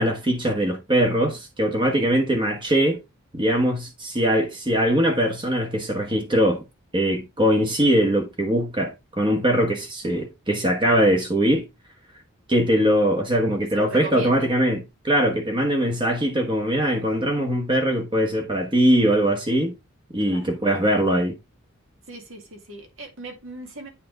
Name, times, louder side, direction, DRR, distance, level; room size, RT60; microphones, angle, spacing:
voice 1, 0.0-3.0 3.3-6.6 6.9-11.6 12.5-19.7 20.1-21.4, equal, 25° right, 1.1 m, -21 dB
voice 2, 13.7-14.5 20.2-20.6 22.1-23.9, right 2 dB, 65° right, 1.9 m, -38 dB
8.5 x 3.5 x 3.7 m
head